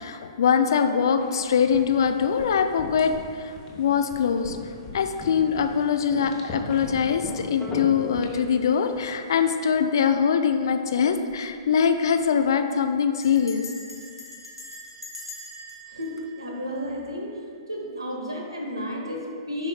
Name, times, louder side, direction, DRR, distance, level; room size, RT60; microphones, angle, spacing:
voice 1, 0.0-4.6 4.9-13.6, left 7 dB, 55° left, 7 dB, 0.4 m, -23 dB
sound 1, 1.2-9.4, left 2 dB, 25° left, 0.9 m, -40 dB
sound 2, 7.6-10.2, left 4 dB, ahead, 0.5 m, -43 dB
Bell, 11.1-11.4 11.7-11.8 12.0-12.4 13.2-17.3, left 1 dB, 90° left, 1.0 m, -43 dB
voice 2, 15.9-17.4 17.7-19.7, equal, 80° right, -1 dB, 1.2 m, -32 dB
10.5 x 4.4 x 2.3 m, 2.2 s
figure-of-eight pair, 115°, 3 cm